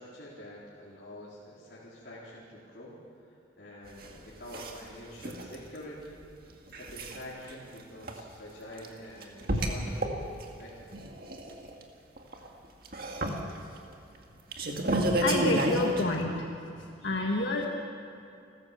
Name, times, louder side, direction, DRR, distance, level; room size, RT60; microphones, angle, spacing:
voice 1, 0.0-3.0 3.6-6.2 6.7-10.1 10.6-10.8, left 1 dB, 55° left, -8 dB, 4.0 m, -46 dB
sound 1, 3.9-4.1 4.5-4.9 5.2-5.5 6.7-7.2 7.5-7.6 8.0-8.2 8.8-8.9 9.2-10.5 10.8-11.8 12.2-12.5 12.8-13.8 14.3-16.0, right 1 dB, 50° right, 2.0 m, -31 dB
voice 2, 15.1-16.5 16.7-17.7, left 2 dB, 70° left, 0 dB, 1.7 m, -29 dB
29.5 x 14.0 x 7.4 m, 2.6 s
head